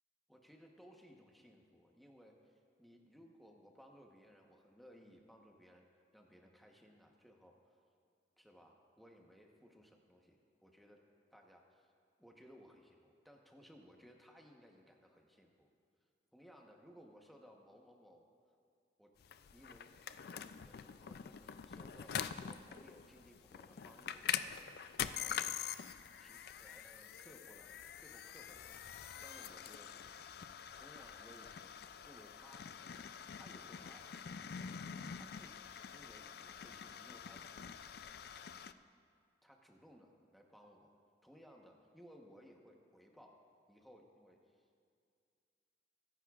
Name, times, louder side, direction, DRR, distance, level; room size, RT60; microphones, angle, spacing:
voice 1, 0.3-7.8 8.4-11.0 11.3-11.9 12.2-15.7 16.3-18.3 19.0-19.1 19.5-19.9 20.2-22.2 22.5-24.4 25.2-25.4 26.2-27.7 28.0-31.7 32.0-32.7 33.3-34.1 35.2-37.7 39.4-40.9 41.2-44.7, equal, ahead, 0 dB, 1.0 m, -61 dB
sound 1, 19.2-38.7, left 8 dB, 55° left, 0.3 m, -45 dB
23.0 x 11.0 x 2.4 m, 2.3 s
head